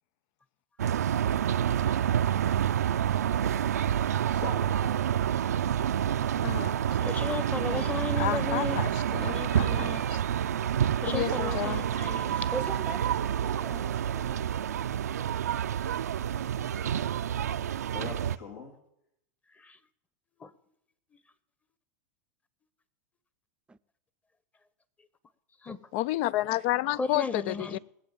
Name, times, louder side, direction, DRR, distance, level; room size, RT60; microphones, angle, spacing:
sound 1, 0.8-18.4, right 9 dB, 90° right, 0.5 m, -28 dB
voice 1, 4.2-5.2 5.8-5.9 17.9-18.8 26.5-26.6, left 4 dB, 75° left, 3.4 m, -42 dB
voice 2, 6.4-6.8 7.7-9.9 11.1-11.8 25.9-27.8, left 15 dB, 55° left, 0.5 m, -31 dB
voice 3, 7.0-8.8 9.2-10.1 11.0-12.5 19.6-19.8 20.4-20.5 25.6-25.8 27.0-27.8, left 4 dB, 15° left, 1.2 m, -35 dB
voice 4, 12.5-14.5 23.7-23.8, right 4 dB, 10° right, 0.6 m, -40 dB
20.0 x 8.1 x 7.2 m
hypercardioid pair, 105°, 8 cm